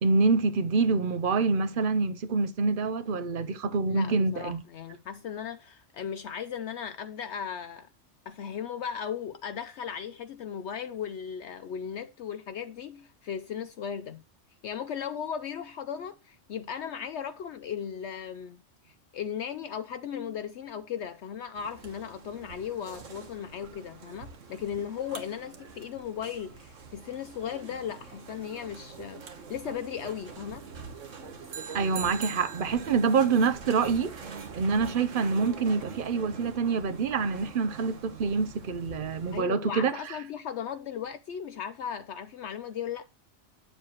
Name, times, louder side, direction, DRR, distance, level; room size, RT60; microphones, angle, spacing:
voice 1, 0.0-4.6 31.7-34.2 34.6-39.9, right 4 dB, 50° right, 0.7 m, -26 dB
voice 2, 3.9-7.9 8.3-14.2 14.6-29.2 29.5-30.7 39.3-43.1, left 8 dB, 65° left, 0.8 m, -37 dB
sound 1, 21.6-39.4, right 5 dB, 75° right, 1.6 m, -44 dB
8.9 x 7.3 x 3.0 m
omnidirectional pair, 1.3 m